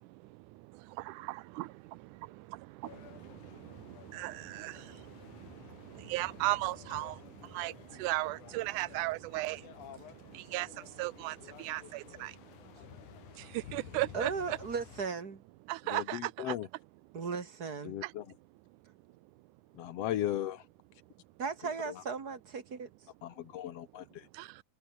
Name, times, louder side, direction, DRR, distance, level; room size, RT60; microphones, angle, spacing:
voice 1, 1.1-1.7 4.1-4.8 6.1-7.2 7.5-7.7 8.0-9.6 10.3-10.7 11.0-12.3 13.7-14.6 15.7-16.6 24.4-24.5, right 19 dB, 85° right, 2.1 m, -35 dB
sound 1, 2.8-15.1, left 11 dB, 80° left, 2.9 m, -53 dB
voice 2, 14.1-15.4 17.1-18.0 21.4-22.9, right 5 dB, 30° right, 2.8 m, -36 dB
voice 3, 15.9-16.7 17.9-18.3 19.8-20.7 21.9-22.0 23.2-24.3, left 12 dB, 60° left, 2.0 m, -36 dB
open air
omnidirectional pair, 3.5 m